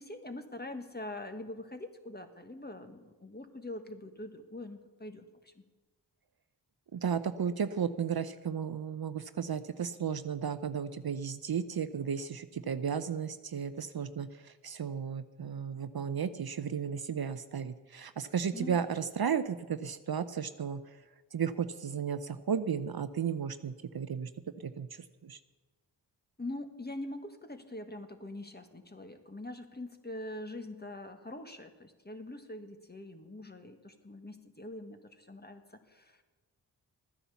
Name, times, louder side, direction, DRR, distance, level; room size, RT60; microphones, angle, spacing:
voice 1, 0.0-5.6 18.5-18.9 26.4-36.2, left 1 dB, 20° left, 6 dB, 1.6 m, -43 dB
voice 2, 6.9-21.0 21.3-24.3 24.6-25.4, right 7 dB, 55° right, 12 dB, 0.7 m, -34 dB
13.0 x 10.0 x 7.0 m, 1.2 s
cardioid pair, 40°, 45 cm